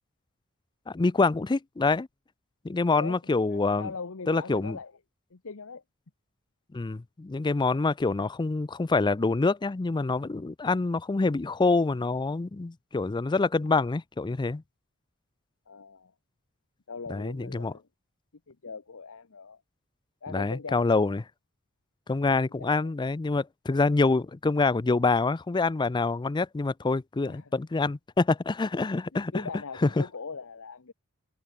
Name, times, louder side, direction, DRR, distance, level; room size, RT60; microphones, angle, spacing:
voice 1, 0.9-2.1 2.6-3.9 4.3-4.8 6.7-14.6 17.1-17.7 20.3-21.2 22.1-29.5 29.8-30.0, left 3 dB, 20° left, 0.4 m, -26 dB
voice 2, 2.9-3.2 3.5-4.9 5.3-5.8 15.7-16.1 16.9-17.9 18.5-19.6 20.2-21.0 22.6-22.9 27.3-27.5 29.1-30.9, left 4 dB, 65° left, 1.0 m, -40 dB
head